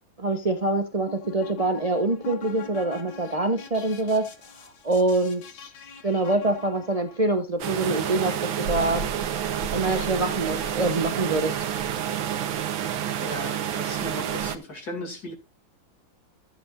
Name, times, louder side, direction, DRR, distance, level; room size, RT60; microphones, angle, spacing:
voice 1, 0.2-4.3 4.8-5.7 6.0-9.0 9.7-11.7, right 2 dB, 30° right, 0.6 m, -25 dB
sound 1, 0.9-7.3, left 5 dB, 90° left, 2.2 m, -43 dB
sound 2, 7.6-14.6, right 9 dB, 85° right, 1.8 m, -29 dB
voice 2, 13.2-15.3, left 1 dB, 50° left, 3.1 m, -36 dB
14.5 x 8.5 x 2.6 m
omnidirectional pair, 2.1 m